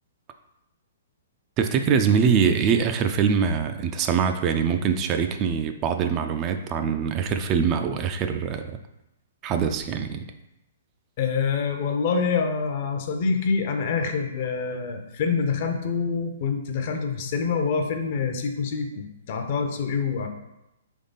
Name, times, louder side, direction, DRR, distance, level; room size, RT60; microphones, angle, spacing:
voice 1, 1.6-8.8 9.4-10.3, right 6 dB, 30° right, 7 dB, 0.3 m, -23 dB
voice 2, 11.2-20.3, left 5 dB, 50° left, 5 dB, 0.6 m, -26 dB
3.6 x 3.3 x 4.0 m, 0.86 s
hypercardioid pair, 130°, 0 cm